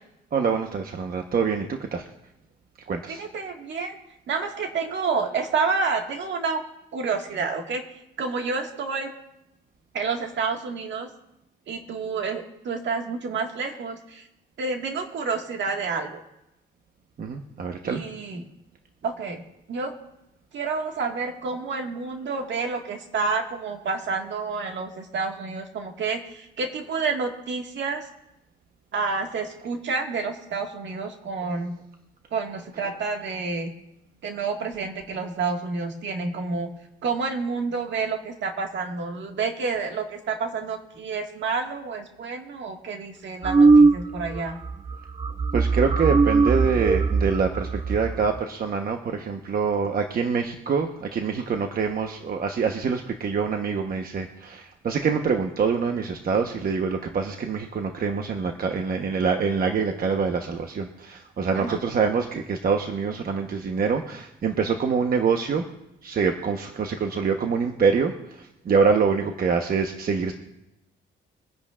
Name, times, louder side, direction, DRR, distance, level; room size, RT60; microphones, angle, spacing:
voice 1, 0.3-2.0 2.9-3.3 17.2-18.0 45.5-65.7 66.0-70.3, right 5 dB, 50° right, 4 dB, 1.1 m, -25 dB
voice 2, 3.1-3.9 4.3-6.6 6.9-7.8 8.2-9.1 9.9-11.1 11.7-14.3 14.6-16.2 17.8-18.5 19.0-19.4 19.7-19.9 20.5-28.1 28.9-31.8 32.3-33.7 34.2-36.7 37.0-44.6 61.5-61.8, right 4 dB, 65° right, 3 dB, 1.8 m, -29 dB
sound 1, 43.4-44.4 44.6-44.9 45.2-48.4, right 4 dB, 25° right, 0.5 m, -19 dB
23.5 x 10.0 x 2.5 m, 0.88 s
cardioid pair, 90°, 20 cm